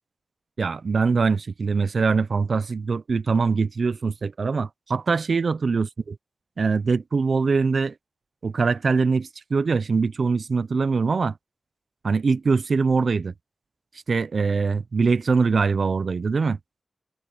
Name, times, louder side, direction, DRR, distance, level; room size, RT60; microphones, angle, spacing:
voice 1, 0.6-6.2 6.6-7.9 8.4-11.3 12.0-13.3 14.1-16.6, right 4 dB, 65° right, 0.5 m, -23 dB
wide cardioid pair, 100°, 0 cm